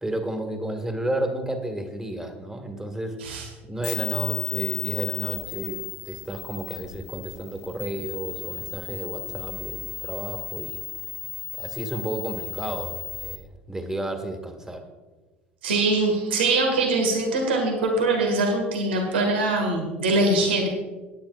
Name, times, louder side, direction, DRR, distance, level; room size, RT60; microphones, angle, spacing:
voice 1, 0.0-3.4 3.6-10.8 11.6-14.8, right 1 dB, 10° right, 5 dB, 1.8 m, -32 dB
sound 1, 3.8-13.4, left 11 dB, 50° left, 0.9 m, -34 dB
voice 2, 15.6-20.7, right 2 dB, 80° right, 2 dB, 1.8 m, -23 dB
17.0 x 10.0 x 2.5 m, 1.3 s
hypercardioid pair, 65°, 6 cm